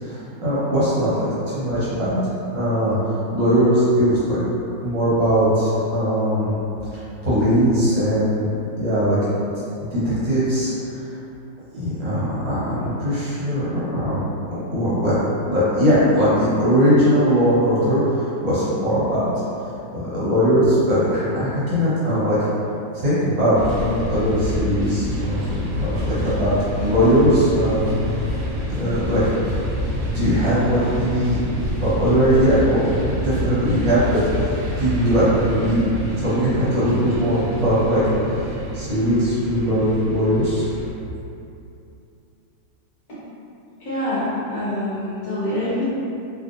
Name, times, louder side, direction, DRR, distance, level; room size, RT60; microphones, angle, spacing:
voice 1, 0.0-1.3 1.5-2.2 2.5-4.4 4.8-6.5 6.9-8.5 8.7-9.2 9.8-11.1 11.7-15.2 15.5-19.3 19.9-22.4 22.9-28.0 28.7-29.2 30.1-31.4 31.8-32.8 33.1-35.8 36.2-38.5 38.7-40.6, equal, 70° right, -11 dB, 1.7 m, -20 dB
sound 1, 23.6-40.9, equal, 90° right, 1.4 m, -27 dB
voice 2, 43.8-45.8, left 1 dB, 65° left, -10 dB, 1.0 m, -25 dB
3.3 x 2.4 x 2.5 m, 2.7 s
omnidirectional pair, 2.1 m